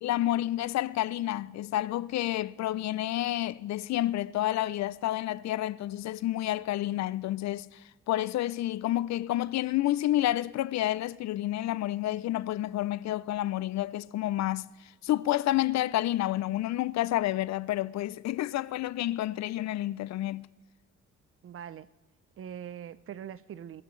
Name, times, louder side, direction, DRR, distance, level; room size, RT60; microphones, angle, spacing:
voice 1, 0.0-14.7 15.0-20.5, left 14 dB, 65° left, 0.4 m, -29 dB
voice 2, 21.4-21.9 22.4-23.8, right 9 dB, 45° right, 0.5 m, -42 dB
20.5 x 13.5 x 3.2 m
cardioid pair, 90°, 30 cm